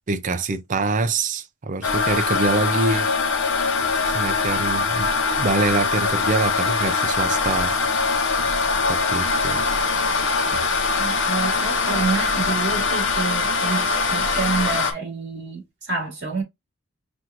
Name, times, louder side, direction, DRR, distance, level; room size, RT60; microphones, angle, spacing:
voice 1, 0.1-3.1 4.1-5.1 5.4-7.8 8.9-9.6, right 3 dB, 35° right, 0.4 m, -25 dB
sound 1, 1.8-14.9, left 4 dB, 60° left, 0.8 m, -22 dB
voice 2, 11.0-16.4, right 4 dB, 55° right, 2.9 m, -28 dB
6.0 x 2.5 x 2.9 m
head